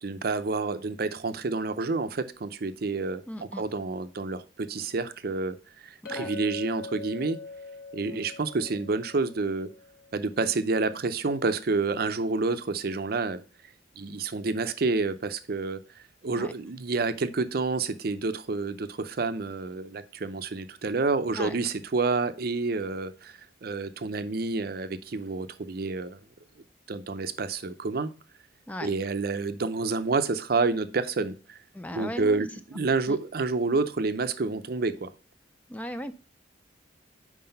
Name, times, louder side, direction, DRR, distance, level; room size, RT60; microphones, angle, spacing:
voice 1, 0.0-7.4 7.9-9.7 10.1-13.4 14.0-15.8 16.2-26.2 26.9-28.1 28.8-31.6 31.9-35.1, right 3 dB, 50° right, 0.5 m, -29 dB
voice 2, 3.3-3.6 6.0-6.3 8.1-8.2 16.3-16.5 21.4-21.6 28.7-28.9 31.7-32.4 33.1-33.2 35.7-36.1, equal, 10° left, 0.3 m, -37 dB
Chink clink, 6.1-10.5, left 3 dB, 60° left, 1.2 m, -42 dB
5.7 x 4.8 x 5.4 m
head